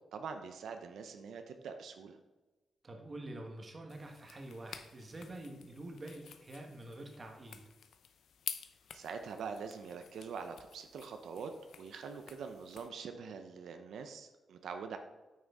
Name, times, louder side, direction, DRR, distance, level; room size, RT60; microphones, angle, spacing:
voice 1, 0.1-2.2 8.9-11.5 11.8-15.0, right 5 dB, 85° right, 6 dB, 0.7 m, -44 dB
voice 2, 2.8-7.6, right 1 dB, 25° right, 3 dB, 1.2 m, -47 dB
sound 1, 3.9-12.9, left 8 dB, 75° left, 0.6 m, -50 dB
9.3 x 6.4 x 3.6 m, 1.2 s
wide cardioid pair, 170°, 0 cm